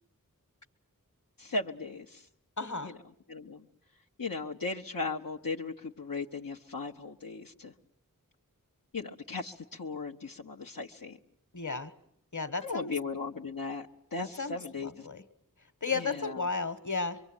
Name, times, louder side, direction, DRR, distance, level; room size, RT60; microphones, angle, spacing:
voice 1, 1.4-2.3 2.8-3.0 3.3-3.7 4.2-7.7 8.9-11.2 12.6-15.1 15.9-16.4, left 3 dB, 85° left, 0 dB, 1.0 m, -37 dB
voice 2, 2.6-2.9 11.5-11.9 12.3-12.9 14.2-15.2 15.8-17.2, left 4 dB, 60° left, 11 dB, 1.5 m, -34 dB
25.0 x 23.5 x 8.9 m, 0.68 s
wide cardioid pair, 45°, 33 cm